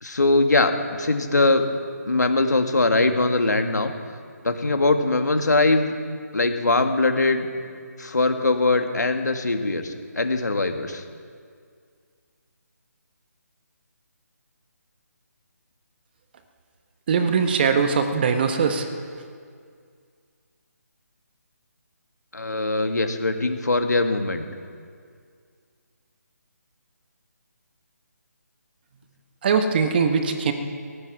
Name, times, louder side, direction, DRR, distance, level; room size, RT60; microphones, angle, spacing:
voice 1, 0.0-1.7 2.1-3.9 4.4-5.9 6.3-7.5 8.0-11.0 22.3-24.5, left 2 dB, 75° left, 6 dB, 2.0 m, -21 dB
voice 2, 17.1-18.9 29.4-30.5, right 5 dB, 35° right, 8 dB, 1.2 m, -21 dB
18.0 x 15.5 x 4.7 m, 2.1 s
figure-of-eight pair, 150°, 9 cm